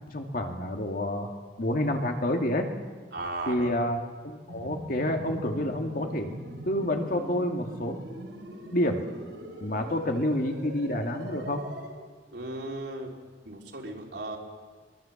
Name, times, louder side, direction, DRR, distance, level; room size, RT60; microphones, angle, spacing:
voice 1, 0.1-1.3 1.6-2.7 3.5-6.3 6.7-8.0 8.7-9.1 9.6-11.6, left 1 dB, 50° left, 3 dB, 2.4 m, -28 dB
voice 2, 3.1-3.7 12.3-13.1 13.4-14.4, right 2 dB, 70° right, 0 dB, 4.0 m, -36 dB
sound 1, 4.5-11.9, right 1 dB, 90° right, 4.4 m, -42 dB
23.0 x 22.5 x 7.4 m, 1.6 s
head